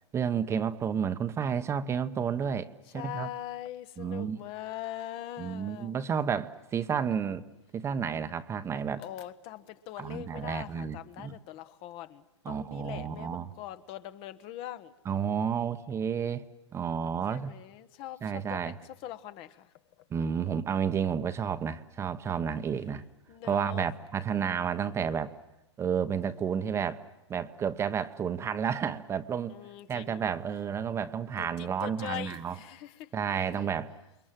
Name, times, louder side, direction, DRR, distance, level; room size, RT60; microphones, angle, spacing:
voice 1, 0.1-3.3 4.0-4.4 5.4-7.4 7.7-9.0 10.0-11.3 12.4-13.5 15.0-16.4 16.7-17.5 18.2-18.7 20.1-23.0 23.4-25.3 25.8-27.0 27.3-29.5 29.9-32.5 33.1-33.9, right 7 dB, 15° right, 1.1 m, -31 dB
voice 2, 2.9-6.0 9.0-14.9 17.3-19.7 22.3-22.4 23.3-23.9 29.5-30.3 31.4-33.1 33.5-33.6, left 13 dB, 35° left, 1.3 m, -42 dB
29.0 x 23.0 x 7.6 m
hypercardioid pair, 135°, 15 cm